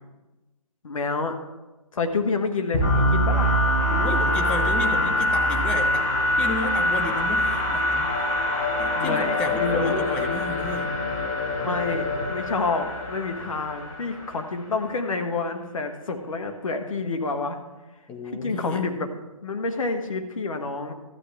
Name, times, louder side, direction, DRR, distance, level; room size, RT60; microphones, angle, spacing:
voice 1, 0.8-1.4 1.9-3.6 8.9-10.0 11.6-17.6 18.2-19.1 19.4-20.9, left 3 dB, 70° left, 6 dB, 1.3 m, -28 dB
sound 1, 2.7-14.5, left 1 dB, 35° left, 2.9 m, -24 dB
voice 2, 3.9-6.1 6.4-8.1 8.8-10.9 18.1-18.8, left 3 dB, 5° left, 4 dB, 0.3 m, -32 dB
13.0 x 8.2 x 3.4 m, 1.1 s
hypercardioid pair, 150°, 18 cm